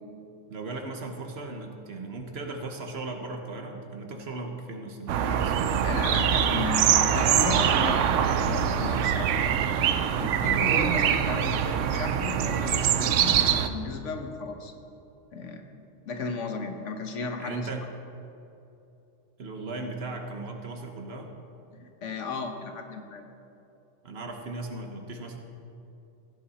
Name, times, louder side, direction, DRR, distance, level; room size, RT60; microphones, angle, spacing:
voice 1, 0.5-5.6 10.0-10.2 17.4-17.9 19.4-21.3 24.0-25.4, right 3 dB, 55° right, 4 dB, 1.2 m, -37 dB
sound 1, 5.1-13.7, right 8 dB, 75° right, 0.9 m, -24 dB
voice 2, 5.8-9.3 10.2-14.7 15.3-15.6 16.0-17.7 21.7-23.3, left 4 dB, 70° left, 5 dB, 1.3 m, -35 dB
16.0 x 8.6 x 4.2 m, 2.8 s
omnidirectional pair, 1.3 m